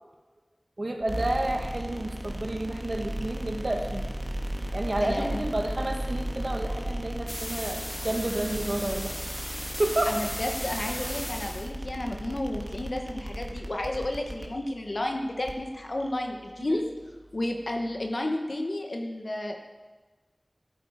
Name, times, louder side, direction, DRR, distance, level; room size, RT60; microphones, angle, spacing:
voice 1, 0.8-4.0 4.7-9.1 9.5-10.2 16.7-16.8, right 1 dB, 60° right, 3 dB, 1.6 m, -30 dB
sound 1, 1.0-18.1, right 1 dB, 30° right, 1.8 m, -36 dB
voice 2, 5.0-5.4 10.1-16.8 17.3-19.6, left 1 dB, 70° left, 3 dB, 1.1 m, -32 dB
sound 2, 7.3-11.7, equal, 10° left, 1.0 m, -36 dB
15.0 x 8.6 x 4.7 m, 1.3 s
wide cardioid pair, 50°, 0 cm